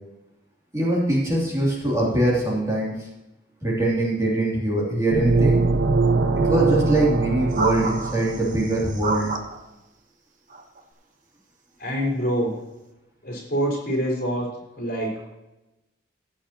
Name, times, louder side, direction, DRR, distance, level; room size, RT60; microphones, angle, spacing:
voice 1, 0.7-3.1 3.6-5.6 6.4-9.3, right 1 dB, 15° right, -5 dB, 2.8 m, -22 dB
sound 1, 5.1-8.8, right 3 dB, 65° right, 0.8 m, -22 dB
sound 2, 7.5-9.6 10.5-10.8, right 3 dB, 40° right, 1.1 m, -29 dB
voice 2, 11.8-12.5 13.2-14.5 14.8-15.3, equal, 45° left, -3 dB, 4.3 m, -25 dB
15.5 x 9.0 x 2.9 m, 0.95 s
head